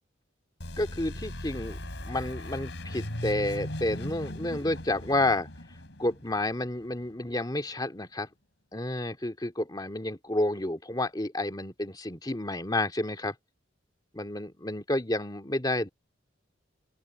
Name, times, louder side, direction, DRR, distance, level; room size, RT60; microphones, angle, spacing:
sound 1, 0.6-7.2, left 1 dB, 70° left, 3.8 m, -38 dB
voice 1, 0.8-5.5 6.0-8.3 8.7-13.3 14.1-15.9, left 1 dB, 20° left, 2.4 m, -30 dB
open air
head